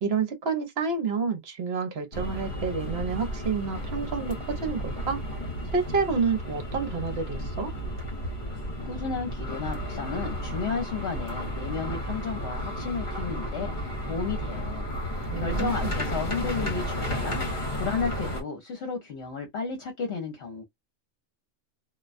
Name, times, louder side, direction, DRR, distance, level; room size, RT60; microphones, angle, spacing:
voice 1, 0.0-5.2 5.7-7.7 15.3-16.0, right 5 dB, 55° right, 0.9 m, -29 dB
sound 1, 2.1-18.4, equal, 40° left, 1.0 m, -33 dB
voice 2, 8.8-20.7, left 5 dB, 60° left, 1.0 m, -33 dB
2.4 x 2.1 x 2.5 m
omnidirectional pair, 1.4 m